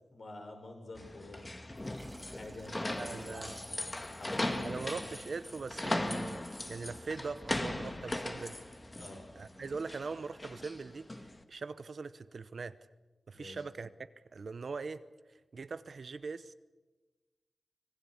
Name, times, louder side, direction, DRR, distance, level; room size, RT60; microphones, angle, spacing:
voice 1, 0.1-1.5 2.2-4.9 9.0-9.2 13.3-13.6, left 2 dB, 60° left, 3 dB, 6.3 m, -48 dB
sound 1, 1.0-11.4, left 1 dB, 20° left, 1.9 m, -38 dB
sound 2, 1.7-6.9, right 2 dB, 25° right, 3.0 m, -61 dB
voice 2, 3.0-3.6 4.6-6.4 6.7-8.8 9.3-12.8 13.3-13.9 14.3-15.0 15.5-16.5, right 4 dB, 60° right, 13 dB, 0.8 m, -41 dB
25.5 x 20.0 x 8.5 m, 1.2 s
wide cardioid pair, 100°, 0 cm